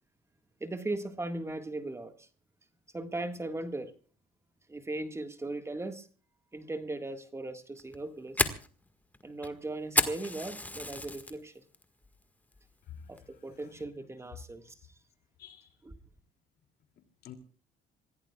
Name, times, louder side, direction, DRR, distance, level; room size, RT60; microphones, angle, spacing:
voice 1, 0.6-2.3 2.9-3.9 4.7-6.1 6.5-8.5 9.2-11.6 13.1-14.7 15.8-15.9, right 2 dB, 15° right, 1.7 m, -38 dB
Fire, 7.8-11.3 11.7-12.1 12.5-12.6 13.2-13.5, left 1 dB, 10° left, 1.7 m, -31 dB
voice 2, 12.9-13.9 15.4-15.8 17.2-17.3, left 8 dB, 65° left, 2.7 m, -50 dB
26.5 x 16.0 x 2.4 m
cardioid pair, 110°, 17 cm